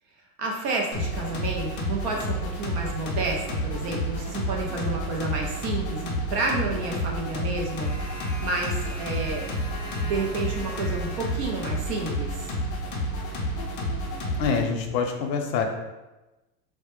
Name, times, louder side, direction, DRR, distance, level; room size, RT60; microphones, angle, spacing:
voice 1, 0.4-7.9 8.4-9.5 10.0-12.5, right 3 dB, 45° right, -1 dB, 0.4 m, -30 dB
sound 1, 0.9-14.6, equal, 45° left, 0.5 m, -30 dB
voice 2, 14.4-15.6, left 6 dB, 85° left, 4 dB, 0.6 m, -25 dB
2.1 x 2.0 x 2.9 m, 1.1 s
supercardioid pair, 145°, 49 cm